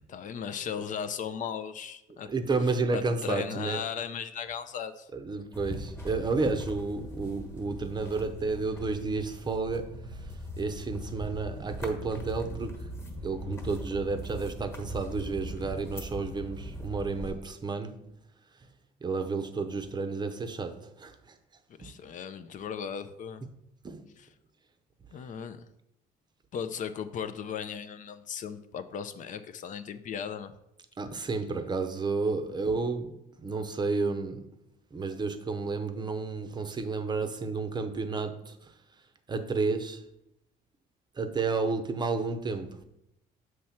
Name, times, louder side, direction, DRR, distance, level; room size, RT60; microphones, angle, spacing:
voice 1, 0.1-2.3 2.9-5.1 21.8-23.4 24.2-24.3 25.1-25.6 26.5-30.5, left 7 dB, 50° left, 0.5 m, -36 dB
voice 2, 2.3-3.8 5.1-10.0 10.6-12.9 13.2-18.1 19.0-21.4 21.8-21.9 23.8-24.1 31.0-34.6 34.9-38.6 39.3-40.0 41.2-42.8, right 4 dB, 25° right, 0.6 m, -31 dB
sound 1, 5.5-17.3, equal, 15° left, 1.3 m, -40 dB
6.9 x 3.2 x 5.8 m
cardioid pair, 110°, 17 cm